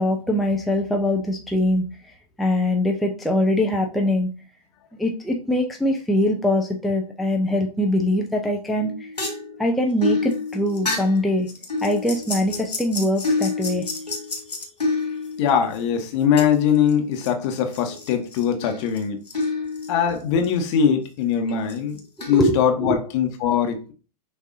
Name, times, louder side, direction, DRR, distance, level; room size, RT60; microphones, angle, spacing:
voice 1, 0.0-1.8 2.4-4.3 5.0-8.9 9.6-11.5 11.8-13.9 22.3-23.0, left 1 dB, ahead, 0.5 m, -22 dB
sound 1, 8.8-15.8 16.4-17.3 17.6-20.4 20.7-20.8 21.5-22.5, left 3 dB, 90° left, 1.2 m, -29 dB
voice 2, 15.4-19.2 19.9-22.0 22.3-23.9, left 7 dB, 45° left, 1.0 m, -21 dB
6.2 x 2.6 x 2.6 m
figure-of-eight pair, 100°, 20 cm